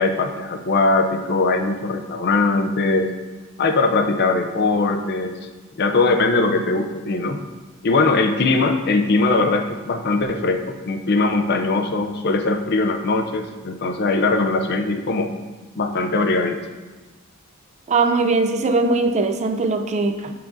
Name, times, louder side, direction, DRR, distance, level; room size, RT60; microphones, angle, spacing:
voice 1, 0.0-3.1 3.6-5.4 5.8-7.4 7.8-15.4 15.8-16.6, left 3 dB, 50° left, 7 dB, 0.5 m, -20 dB
voice 2, 17.9-20.3, right 3 dB, 30° right, 7 dB, 0.4 m, -20 dB
8.5 x 5.6 x 2.6 m, 1.3 s
head